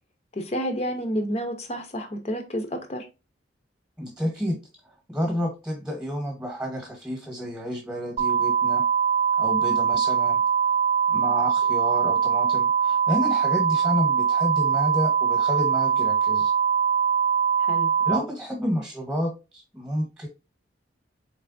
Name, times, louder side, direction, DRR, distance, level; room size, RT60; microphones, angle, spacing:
voice 1, 0.3-3.1 17.7-17.9, equal, 35° left, 6 dB, 0.6 m, -30 dB
voice 2, 4.0-4.6 5.1-8.8 9.4-10.4 11.1-16.5 18.0-20.3, equal, 5° right, 1 dB, 1.1 m, -30 dB
sound 1, 8.2-18.2, right 7 dB, 30° right, 0.6 m, -22 dB
4.3 x 3.3 x 2.5 m, 0.29 s
head